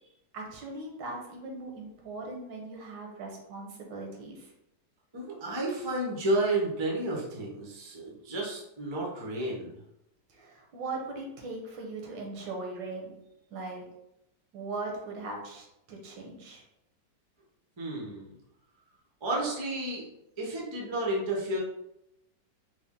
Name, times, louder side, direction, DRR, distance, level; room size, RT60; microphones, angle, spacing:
voice 1, 0.3-4.5 10.3-13.1 13.5-13.8 14.5-16.6, right 3 dB, 80° right, 0 dB, 1.5 m, -39 dB
voice 2, 5.1-9.7 17.8-18.3 19.2-20.0 20.4-21.6, right 1 dB, 45° right, -3 dB, 0.3 m, -31 dB
4.1 x 2.0 x 3.7 m, 0.85 s
omnidirectional pair, 2.0 m